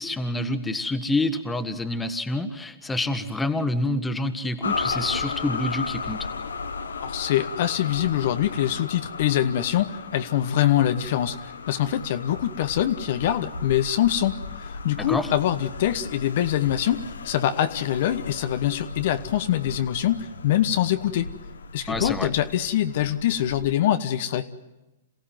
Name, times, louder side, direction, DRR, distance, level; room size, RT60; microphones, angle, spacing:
voice 1, 0.0-6.3 15.1-15.3 21.9-22.3, left 2 dB, 10° left, 8 dB, 1.6 m, -27 dB
sound 1, 4.6-23.7, left 4 dB, 85° left, 1.1 m, -36 dB
voice 2, 7.0-21.3 21.7-24.5, left 11 dB, 60° left, 9 dB, 1.1 m, -24 dB
27.5 x 16.5 x 9.1 m, 1.0 s
hypercardioid pair, 120°, 0 cm